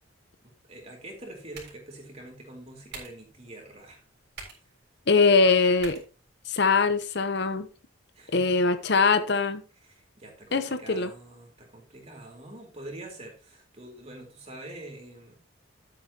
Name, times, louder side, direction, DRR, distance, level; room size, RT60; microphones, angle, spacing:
voice 1, 0.4-4.0 8.1-8.7 9.8-15.4, right 1 dB, 30° right, 3.8 m, -45 dB
sound 1, 1.0-7.0, right 4 dB, 50° right, 3.9 m, -49 dB
voice 2, 5.1-6.0 6.5-7.7 8.3-9.6 10.5-11.1, left 4 dB, 55° left, 0.8 m, -22 dB
12.0 x 8.8 x 2.9 m
head